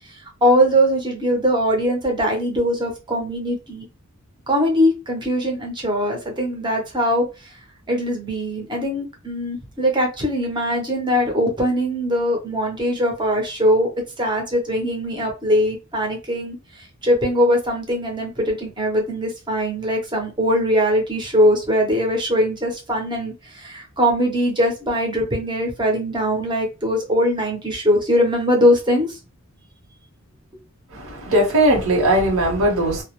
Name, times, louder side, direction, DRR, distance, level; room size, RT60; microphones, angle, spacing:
voice 1, 0.4-3.8 4.5-7.3 7.9-13.9 14.2-16.6 17.0-23.3 23.6-29.1, equal, 20° right, 0.7 m, -21 dB
voice 2, 30.9-33.0, right 1 dB, 65° right, 0.9 m, -18 dB
2.3 x 2.0 x 2.9 m
head